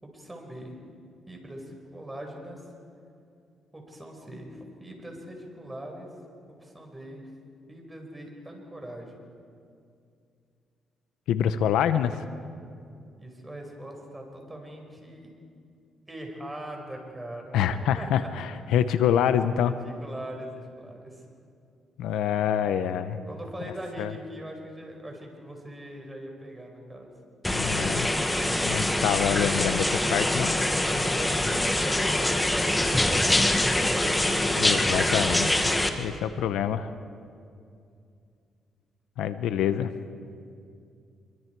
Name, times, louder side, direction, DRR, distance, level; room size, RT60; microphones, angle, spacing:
voice 1, 0.0-0.8 1.3-2.6 3.7-6.1 6.5-7.2 7.7-9.2 13.2-15.3 16.1-18.3 19.6-20.5 20.8-21.2 23.3-27.1 31.0-34.6, right 1 dB, 15° right, 1 dB, 5.3 m, -41 dB
voice 2, 11.3-12.2 17.5-19.7 22.0-23.2 24.0-24.1 27.5-28.1 28.6-30.5 34.6-35.5 36.0-36.9 39.2-39.9, left 9 dB, 85° left, 11 dB, 0.9 m, -26 dB
sound 1, 27.4-35.9, left 1 dB, 10° left, 1.8 m, -24 dB
26.0 x 24.0 x 4.7 m, 2.4 s
cardioid pair, 90°, 0 cm